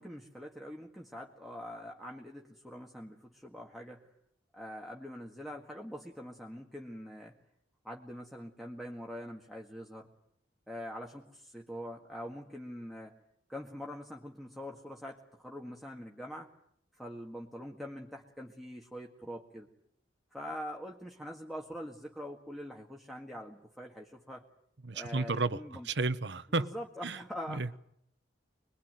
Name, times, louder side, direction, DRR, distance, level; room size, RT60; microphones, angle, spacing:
voice 1, 0.0-4.1 4.5-7.4 7.8-10.1 10.7-13.2 13.5-16.5 16.9-19.7 20.3-24.4 24.9-25.9 26.6-27.6, equal, ahead, 1.8 m, -44 dB
voice 2, 24.8-25.6 25.8-26.7 27.0-27.2 27.5-27.8, right 3 dB, 80° right, 1.1 m, -32 dB
25.5 x 21.5 x 9.4 m
head